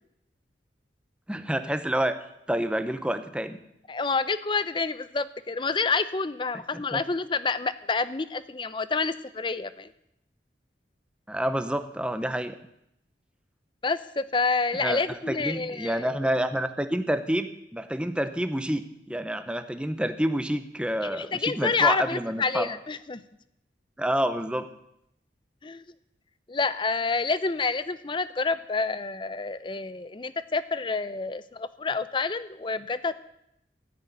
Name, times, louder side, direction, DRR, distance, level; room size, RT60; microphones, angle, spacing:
voice 1, 1.3-2.1 2.5-3.6 6.7-7.0 11.3-12.5 14.8-17.5 17.7-22.7 24.0-24.7, right 1 dB, 5° right, 9 dB, 0.8 m, -28 dB
voice 2, 3.9-9.9 13.8-16.1 21.0-23.2 25.6-25.8 26.5-33.2, left 4 dB, 30° left, 14 dB, 0.6 m, -28 dB
14.5 x 6.3 x 9.4 m, 0.80 s
head